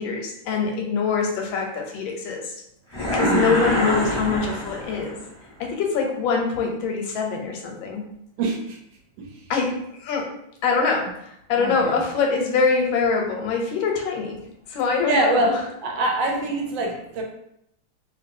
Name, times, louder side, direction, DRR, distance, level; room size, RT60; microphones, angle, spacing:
voice 1, 0.0-2.6 3.0-5.2 5.6-8.0 9.5-9.7 10.0-10.3 10.6-14.4 14.7-15.6, left 5 dB, 80° left, 1 dB, 1.3 m, -24 dB
sound 1, 2.9-5.2, equal, 15° left, 0.9 m, -24 dB
voice 2, 3.2-3.5 8.4-8.8 9.2-9.3 11.6-11.9 15.0-15.5 15.8-17.2, right 2 dB, 80° right, 1 dB, 1.3 m, -24 dB
3.0 x 2.9 x 2.5 m, 0.77 s
omnidirectional pair, 2.2 m